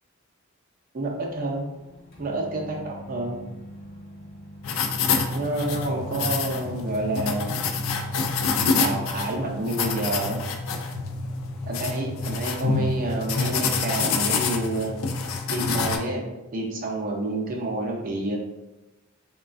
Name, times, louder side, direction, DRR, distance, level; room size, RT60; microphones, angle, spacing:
voice 1, 0.9-1.7 2.2-3.4 5.3-7.6 8.8-10.4 11.7-14.9 15.5-18.4, right 2 dB, 45° right, 0 dB, 0.5 m, -29 dB
sound 1, 1.1-9.8, equal, 50° left, 0.9 m, -44 dB
sound 2, 4.6-16.0, left 4 dB, 70° left, 0.3 m, -27 dB
3.1 x 2.2 x 2.4 m, 0.99 s
head